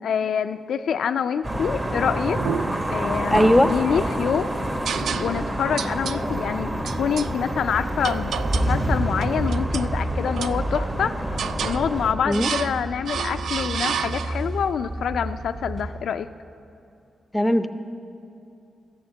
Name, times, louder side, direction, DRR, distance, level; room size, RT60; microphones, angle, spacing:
voice 1, 0.0-2.4 2.9-4.5 5.2-16.3, left 7 dB, 85° left, 9 dB, 0.3 m, -26 dB
sound 1, 1.4-12.1, right 1 dB, 25° right, 1.4 m, -28 dB
sound 2, 2.4-2.9 3.3-4.2 4.8-5.5 5.8-6.2 6.8-7.3 8.0-8.8 9.2-9.9 10.4-11.0 11.4-11.8 12.3-12.8 13.0-14.5, right 7 dB, 85° right, 0.3 m, -30 dB
voice 2, 3.3-3.7 12.3-12.5 17.3-17.7, left 1 dB, 10° left, 10 dB, 0.6 m, -18 dB
sound 3, 4.6-5.4 5.7-6.9 7.2-15.9, right 1 dB, 45° right, 1.9 m, -30 dB
13.5 x 7.2 x 8.6 m, 2.7 s
cardioid pair, 100°, 0 cm